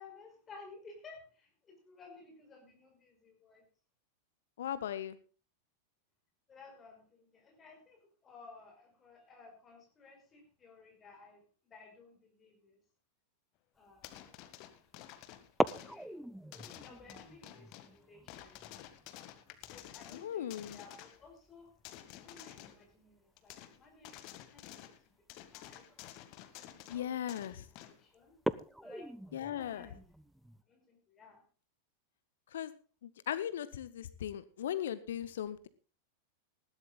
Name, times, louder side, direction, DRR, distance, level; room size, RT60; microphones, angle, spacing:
voice 1, 0.0-3.6 6.5-12.8 13.8-14.6 15.6-16.1 16.7-18.6 19.7-21.7 22.2-24.2 24.5-24.9 25.5-25.9 26.6-27.2 27.7-28.3 28.8-30.0 30.7-31.4, left 4 dB, 20° left, 2 dB, 5.3 m, -56 dB
voice 2, 4.6-5.2 20.1-20.8 26.9-27.7 29.3-29.9 32.5-32.7 33.0-35.7, left 10 dB, 60° left, 14 dB, 0.9 m, -38 dB
sound 1, 13.9-14.3 15.4-21.9 22.2-22.3 22.6-23.0 24.0-24.2 24.8-24.9 25.4-25.5 25.9-26.2 26.9-27.2 27.6-27.7 28.3-30.6, right 1 dB, ahead, 0.6 m, -41 dB
sound 2, 14.0-16.0 16.5-18.0 18.3-21.3 21.8-22.8 23.4-23.8 24.0-25.0 25.3-28.0 28.6-28.7, left 13 dB, 40° left, 1.8 m, -51 dB
20.0 x 15.0 x 2.4 m, 0.37 s
figure-of-eight pair, 90°, 0 cm